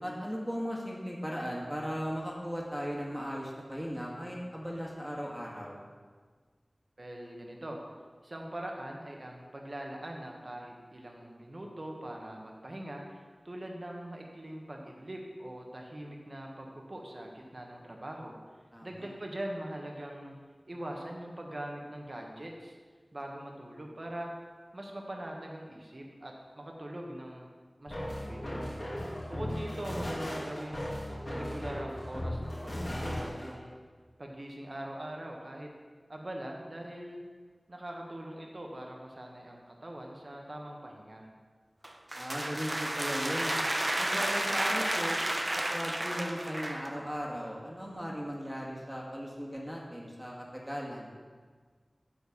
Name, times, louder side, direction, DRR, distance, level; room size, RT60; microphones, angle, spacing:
voice 1, 0.0-5.8 18.7-19.1 42.1-43.6 44.0-45.2 45.7-51.1, equal, 5° right, -3 dB, 1.9 m, -37 dB
voice 2, 7.0-7.8 8.2-18.3 18.8-20.3 20.7-22.8 23.1-24.3 24.7-27.5 27.8-28.5 29.2-31.0 31.3-33.7 34.2-35.7 36.1-37.2 37.7-41.3, right 1 dB, 50° right, 0 dB, 1.5 m, -42 dB
sound 1, 27.9-33.5, left 1 dB, 55° left, 2.9 m, -37 dB
sound 2, 41.8-46.9, right 1 dB, 35° right, 0.7 m, -32 dB
8.8 x 4.6 x 7.2 m, 1.5 s
wide cardioid pair, 50°, 0 cm